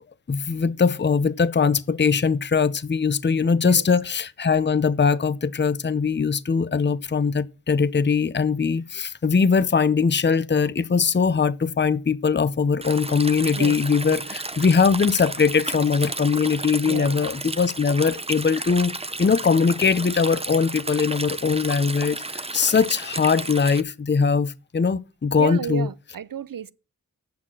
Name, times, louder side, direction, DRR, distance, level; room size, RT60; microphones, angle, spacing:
voice 1, 0.3-18.9 19.2-22.2 22.5-25.9, left 5 dB, 30° left, 0.6 m, -21 dB
Stream, 12.8-23.8, right 2 dB, 15° right, 0.7 m, -33 dB
voice 2, 16.9-17.2 25.4-26.7, right 8 dB, 70° right, 0.6 m, -32 dB
8.6 x 5.9 x 7.4 m
wide cardioid pair, 45°, 35 cm